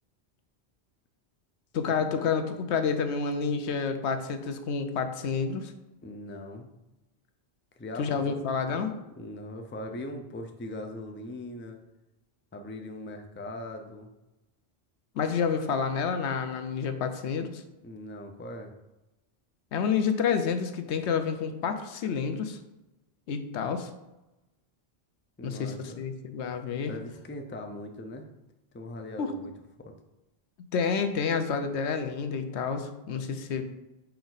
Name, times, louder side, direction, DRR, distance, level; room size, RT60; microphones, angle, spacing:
voice 1, 1.7-5.7 8.0-8.9 15.2-17.6 19.7-22.6 23.3-23.9 25.4-26.9 29.2-29.3 30.7-33.6, left 6 dB, 80° left, 8 dB, 0.9 m, -29 dB
voice 2, 6.0-6.7 7.8-8.4 8.7-8.9 9.2-11.8 12.5-14.1 17.8-18.7 25.4-26.1 26.8-28.3 28.7-29.5 29.8-29.9, left 1 dB, 20° left, 4 dB, 0.3 m, -40 dB
5.2 x 4.5 x 4.0 m, 1.0 s
omnidirectional pair, 1.1 m